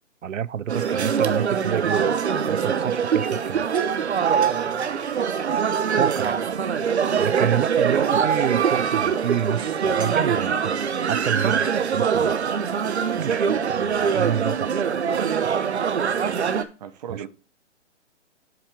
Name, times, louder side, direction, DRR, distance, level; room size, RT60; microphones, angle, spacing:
voice 1, 0.2-2.1 2.5-3.7 6.0-6.4 7.2-10.8 11.1-12.3 13.2-14.8 15.6-15.7 17.1-17.2, right 9 dB, 85° right, 0.5 m, -28 dB
sound 1, 0.7-16.6, right 7 dB, 60° right, 1.0 m, -23 dB
voice 2, 16.8-17.3, right 9 dB, 35° right, 0.8 m, -37 dB
7.6 x 5.6 x 4.8 m
figure-of-eight pair, 140°, 37 cm